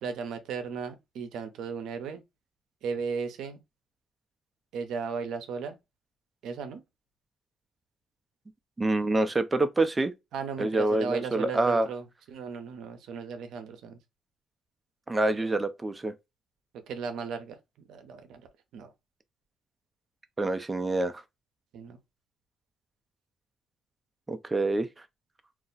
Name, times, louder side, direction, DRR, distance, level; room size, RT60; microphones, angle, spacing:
voice 1, 0.0-2.2 2.8-3.6 4.7-5.8 6.4-6.8 10.3-14.0 15.4-15.5 16.9-17.6 17.9-18.4 18.7-18.9 21.7-22.0, right 5 dB, 80° right, 0.6 m, -36 dB
voice 2, 8.8-10.1 10.6-11.9 15.1-16.1 20.4-21.2 24.3-24.9, right 2 dB, 20° right, 0.5 m, -26 dB
2.4 x 2.1 x 3.8 m
cardioid pair, 90°, 0 cm